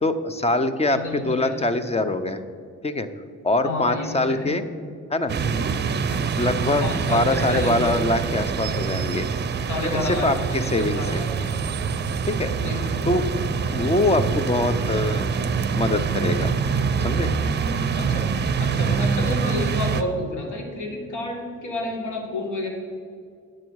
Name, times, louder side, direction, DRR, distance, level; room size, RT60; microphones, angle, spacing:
voice 1, 0.0-2.4 2.8-3.1 3.4-4.6 5.1-5.3 6.4-9.3 9.8-11.2 12.3-12.5 13.0-13.2 13.7-16.5 17.0-17.3, left 2 dB, 20° left, 11 dB, 0.6 m, -24 dB
voice 2, 0.9-1.8 3.6-4.5 6.5-8.0 9.7-11.3 12.6-13.1 17.9-18.3 18.6-22.7, left 2 dB, 75° left, 1 dB, 1.9 m, -30 dB
sound 1, 5.3-20.0, right 5 dB, 35° right, 0.6 m, -25 dB
10.5 x 7.3 x 4.6 m, 2.2 s
cardioid pair, 90°, 30 cm